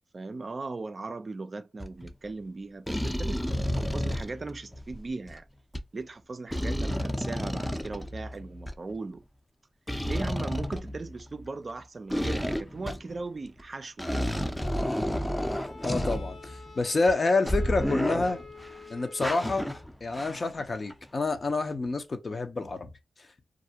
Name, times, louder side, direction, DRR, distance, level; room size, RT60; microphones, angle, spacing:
voice 1, 0.1-3.4 3.7-5.5 5.9-9.2 10.0-14.6, right 3 dB, 50° right, 0.3 m, -38 dB
sound 1, 1.8-2.1 2.9-5.4 5.7-5.8 6.5-8.7 9.9-11.5 12.1-13.2 13.6-13.7 14.0-16.7 17.1-17.2 17.5-18.7 19.2-20.6 20.9-21.0, equal, 10° left, 0.5 m, -31 dB
Bowed string instrument, 15.3-19.9, left 4 dB, 70° left, 1.0 m, -48 dB
voice 2, 15.8-18.4 18.9-19.7 20.0-22.9, left 3 dB, 50° left, 0.6 m, -28 dB
2.4 x 2.0 x 2.7 m
supercardioid pair, 40°, 0 cm